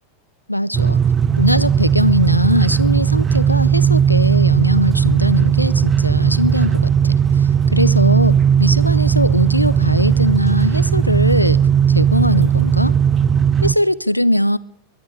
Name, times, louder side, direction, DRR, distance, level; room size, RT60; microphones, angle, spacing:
voice 1, 0.5-1.0 1.4-11.6 11.9-12.9 13.6-14.6, left 1 dB, 90° left, 18 dB, 0.6 m, -20 dB
sound 1, 0.7-13.7, right 8 dB, 25° right, 0.5 m, -16 dB
22.0 x 10.5 x 5.0 m, 0.68 s
figure-of-eight pair, 90°, 0 cm